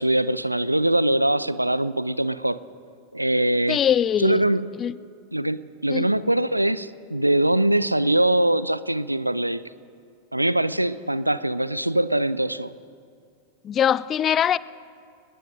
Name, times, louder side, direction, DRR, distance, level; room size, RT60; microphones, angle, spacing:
voice 1, 0.0-2.6 3.1-3.8 4.2-4.7 5.3-9.6 10.3-12.7, right 1 dB, 85° right, 0.4 m, -22 dB
voice 2, 3.7-4.4 4.8-4.9 5.9-6.1 13.6-14.6, left 9 dB, 25° left, 0.3 m, -22 dB
26.5 x 19.5 x 2.6 m
figure-of-eight pair, 90°, 0 cm